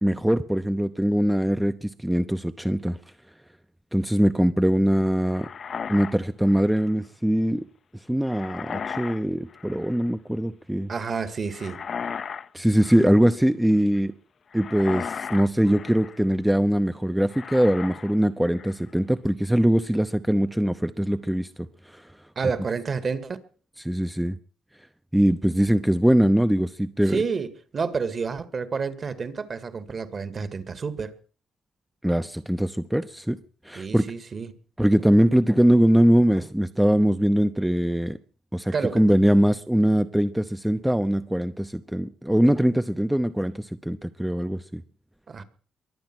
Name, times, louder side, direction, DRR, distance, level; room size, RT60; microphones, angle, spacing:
voice 1, 0.0-3.0 3.9-5.5 5.9-7.7 8.1-10.9 12.5-14.1 14.5-21.5 21.9-22.1 23.8-24.3 25.1-27.2 32.0-33.4 33.6-34.1 34.8-38.2 38.5-44.8, equal, 5° right, 0.8 m, -22 dB
sound 1, 5.3-6.9 8.3-9.2 9.5-10.1 11.5-12.5 12.7-13.3 14.5-16.2 17.3-18.2 18.5-18.9, left 6 dB, 50° left, 0.7 m, -36 dB
voice 2, 10.9-11.8 22.4-23.4 27.1-31.1 33.8-34.6 38.7-39.1 45.3-45.4, right 5 dB, 40° right, 2.1 m, -29 dB
23.0 x 8.6 x 6.2 m
cardioid pair, 90°, 0 cm